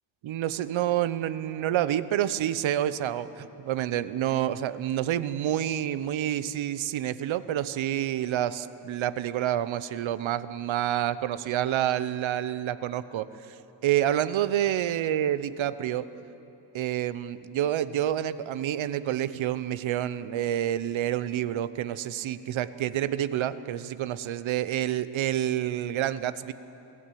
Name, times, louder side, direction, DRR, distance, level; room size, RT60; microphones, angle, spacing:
voice 1, 0.2-13.6 13.8-16.1 16.7-26.5, right 11 dB, 80° right, 14 dB, 0.8 m, -28 dB
22.0 x 16.0 x 9.1 m, 3.0 s
wide cardioid pair, 165°, 46 cm